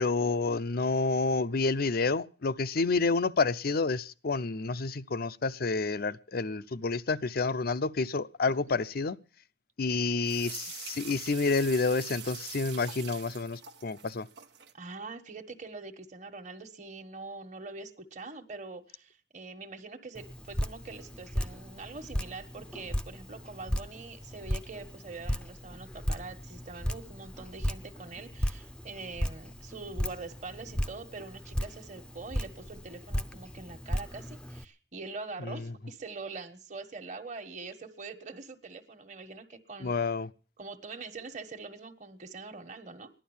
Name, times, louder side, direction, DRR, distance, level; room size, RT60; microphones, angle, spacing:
voice 1, 0.0-9.2 9.8-14.3 35.4-35.7 39.8-40.3, left 3 dB, 55° left, 0.6 m, -29 dB
sound 1, 10.2-14.7, right 10 dB, 80° right, 1.1 m, -44 dB
voice 2, 14.7-40.0 40.6-43.1, right 3 dB, 45° right, 1.4 m, -44 dB
Drip, 20.1-34.6, equal, 5° left, 0.6 m, -36 dB
16.0 x 11.5 x 7.2 m
head